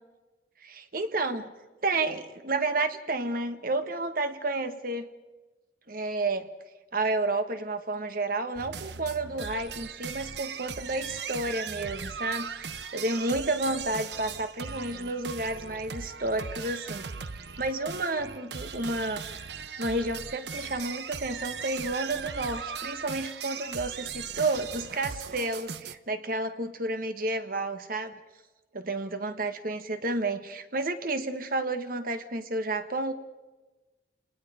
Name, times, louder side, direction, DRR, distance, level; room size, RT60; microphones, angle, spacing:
voice 1, 0.6-1.5 1.8-5.1 5.9-6.5 6.9-17.1 17.6-28.1 28.7-33.1, right 2 dB, 55° right, 9 dB, 1.5 m, -31 dB
sound 1, 8.6-26.0, right 6 dB, 70° right, 0.9 m, -38 dB
29.5 x 19.0 x 5.1 m, 1.2 s
head